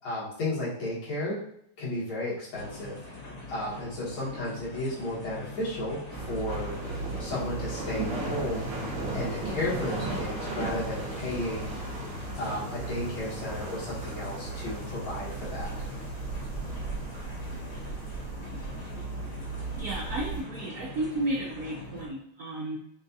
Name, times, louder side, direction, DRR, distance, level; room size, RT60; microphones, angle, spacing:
voice 1, 0.0-1.4 1.8-3.0 3.5-6.8 7.2-8.7 9.1-11.7 12.3-15.9, left 1 dB, 80° left, -7 dB, 2.3 m, -33 dB
sound 1, 2.5-22.1, left 2 dB, 55° left, 1.6 m, -43 dB
sound 2, 6.1-20.4, right 3 dB, 65° right, 1.7 m, -36 dB
voice 2, 19.8-22.8, right 1 dB, 90° right, -1 dB, 0.8 m, -33 dB
6.3 x 2.3 x 2.6 m, 0.71 s
omnidirectional pair, 2.3 m